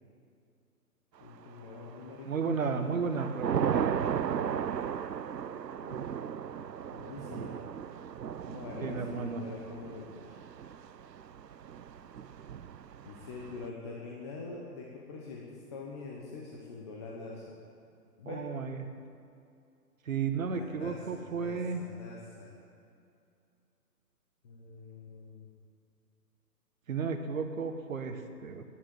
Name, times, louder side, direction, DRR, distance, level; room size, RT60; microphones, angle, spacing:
voice 1, 1.2-3.4 3.7-4.0 4.2-4.7 5.8-6.0 6.9-7.6 8.5-10.4 13.0-17.4 18.2-18.4 20.4-22.5 24.4-25.5, left 4 dB, 15° left, -3 dB, 0.9 m, -45 dB
Thunder / Rain, 1.6-2.1 2.6-13.7, right 8 dB, 80° right, 0.7 m, -36 dB
voice 2, 2.3-4.0 8.8-9.4 18.3-18.9 20.1-21.8 26.9-28.6, right 5 dB, 55° right, 6 dB, 1.4 m, -33 dB
10.5 x 9.3 x 9.2 m, 2.5 s
figure-of-eight pair, 145°, 49 cm